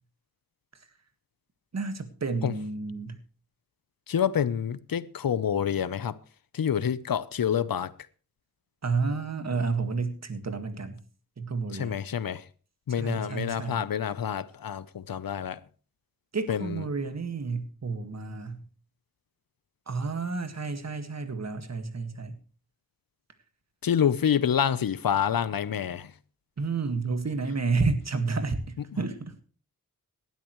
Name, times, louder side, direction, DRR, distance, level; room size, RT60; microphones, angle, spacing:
voice 1, 1.7-3.2 8.8-11.0 11.4-12.0 13.0-13.9 16.3-18.6 19.9-22.4 26.6-29.4, right 4 dB, 50° right, 1.9 m, -30 dB
voice 2, 4.1-6.1 6.5-7.9 11.7-12.4 12.9-15.6 16.5-16.8 23.8-26.1, left 8 dB, 80° left, 0.9 m, -27 dB
18.5 x 12.5 x 3.2 m
wide cardioid pair, 115°, 34 cm